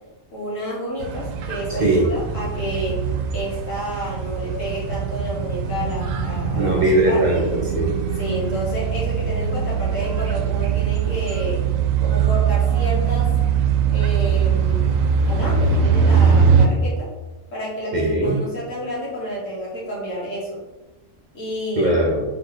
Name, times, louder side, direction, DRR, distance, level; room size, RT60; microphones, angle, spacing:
voice 1, 0.3-3.0 3.3-7.2 8.2-11.6 12.0-13.3 13.9-15.0 15.2-17.1 17.5-20.6 21.3-21.9, equal, 75° left, -6 dB, 1.9 m, -30 dB
sound 1, 1.0-16.7, right 6 dB, 90° right, 1.0 m, -21 dB
voice 2, 6.5-7.9 10.2-10.3 17.9-18.4 21.8-22.2, right 1 dB, 45° right, -3 dB, 0.7 m, -19 dB
3.9 x 3.7 x 3.3 m, 1.2 s
omnidirectional pair, 1.3 m